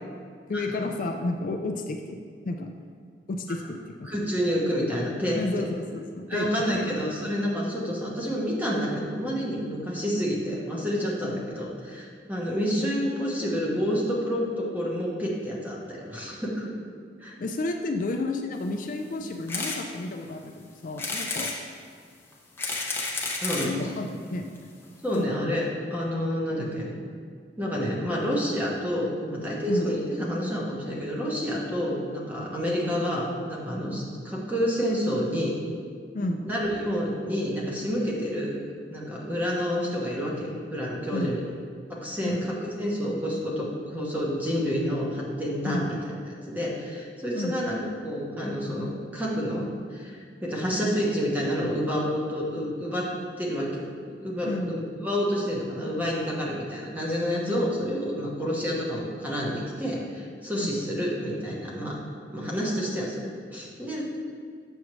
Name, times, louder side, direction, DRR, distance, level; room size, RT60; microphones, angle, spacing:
voice 1, 0.5-2.7 3.3-4.1 5.3-7.1 11.2-11.4 17.4-21.7 23.6-24.5 25.1-25.4 29.7-29.9 36.1-36.4 41.1-41.4 42.2-42.5 45.6-45.8 47.3-47.7 54.4-54.8 57.5-57.7 60.6-60.7, left 2 dB, 50° left, 4 dB, 0.4 m, -32 dB
voice 2, 4.0-5.7 6.3-16.7 17.2-17.3 23.4-23.7 25.0-26.9 27.6-35.6 36.4-38.6 38.9-41.4 41.9-46.0 46.3-49.7 49.9-53.8 54.2-62.0 62.3-64.0, equal, 10° right, -4 dB, 1.0 m, -29 dB
sound 1, 19.5-19.8 20.3-20.4 21.0-21.6 22.3-23.7 24.6-24.7 24.8-24.9 25.1-25.2, left 3 dB, 15° left, 0.7 m, -31 dB
7.1 x 6.3 x 3.1 m, 2.1 s
head